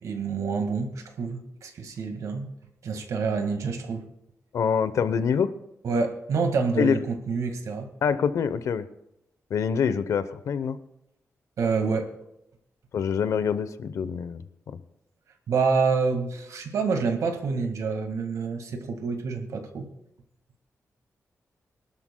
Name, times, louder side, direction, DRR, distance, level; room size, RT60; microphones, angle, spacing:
voice 1, 0.0-2.5 2.8-4.1 5.8-7.9 11.6-12.1 15.5-19.9, right 5 dB, 85° right, 6 dB, 1.8 m, -27 dB
voice 2, 4.5-5.5 6.8-7.0 8.0-8.8 9.5-10.8 12.9-14.4 14.7-14.8, left 7 dB, 85° left, 13 dB, 0.8 m, -25 dB
25.0 x 12.5 x 2.3 m, 0.84 s
wide cardioid pair, 145°, 5 cm